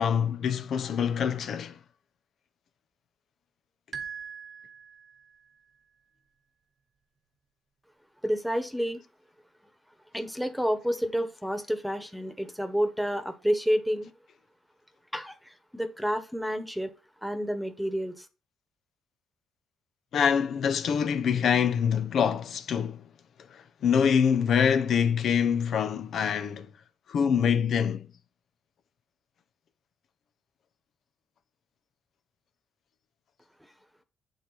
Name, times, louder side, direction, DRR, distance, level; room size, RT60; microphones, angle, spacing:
voice 1, 0.0-1.7 20.1-23.0 23.5-26.7 27.1-28.0, left 7 dB, 65° left, 0.7 m, -25 dB
sound 1, 3.9-5.5, right 7 dB, 55° right, 1.2 m, -41 dB
voice 2, 8.2-9.0 10.1-14.1 15.1-16.9 17.2-18.3, equal, ahead, 1.3 m, -29 dB
8.5 x 3.3 x 5.9 m
cardioid pair, 90°, 0 cm